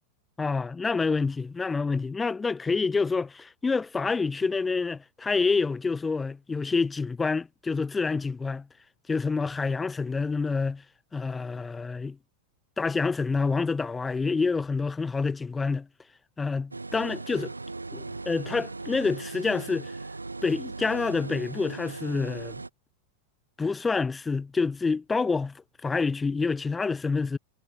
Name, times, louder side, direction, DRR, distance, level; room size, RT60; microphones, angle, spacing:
voice 1, 0.4-8.7 9.1-10.8 11.1-12.2 12.8-15.9 16.4-17.5 17.9-19.9 20.4-22.6 23.6-27.4, left 4 dB, 15° left, 0.8 m, -27 dB
sound 1, 16.7-22.7, right 3 dB, 80° right, 1.2 m, -38 dB
figure-of-eight pair, 90°, 0 cm